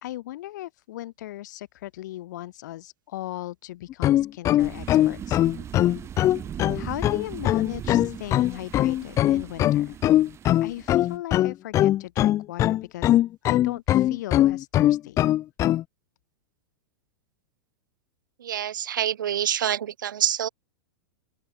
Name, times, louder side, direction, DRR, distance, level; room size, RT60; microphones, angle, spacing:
voice 1, 0.0-5.4 6.7-10.0 10.6-13.2 13.4-15.3, left 15 dB, 65° left, 4.0 m, -37 dB
sound 1, 3.9-15.8, left 13 dB, 30° left, 0.5 m, -21 dB
sound 2, 4.6-11.2, right 9 dB, 25° right, 3.6 m, -40 dB
voice 2, 18.4-20.5, right 10 dB, 90° right, 0.4 m, -26 dB
open air
hypercardioid pair, 120°, 10 cm